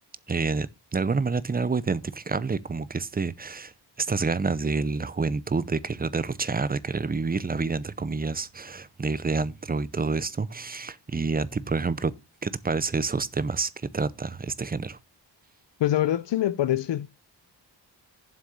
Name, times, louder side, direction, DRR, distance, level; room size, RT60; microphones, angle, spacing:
voice 1, 0.3-3.7 4.0-12.1 12.4-15.0, right 4 dB, 20° right, 0.6 m, -28 dB
voice 2, 15.8-17.1, left 12 dB, 90° left, 0.7 m, -24 dB
7.7 x 6.1 x 7.0 m
wide cardioid pair, 155°, 42 cm